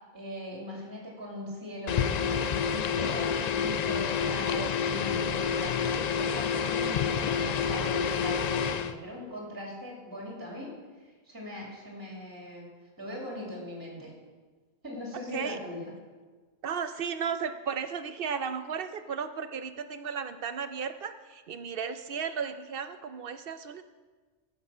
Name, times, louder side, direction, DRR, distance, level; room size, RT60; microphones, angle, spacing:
voice 1, 0.1-10.7 11.0-12.7 13.0-14.1 14.8-15.9, left 1 dB, 15° right, -2 dB, 2.3 m, -40 dB
sound 1, 1.9-8.9, left 7 dB, 80° left, 0.3 m, -28 dB
voice 2, 16.6-23.8, right 6 dB, 60° right, 10 dB, 0.7 m, -34 dB
14.0 x 6.1 x 5.5 m, 1.4 s
omnidirectional pair, 1.3 m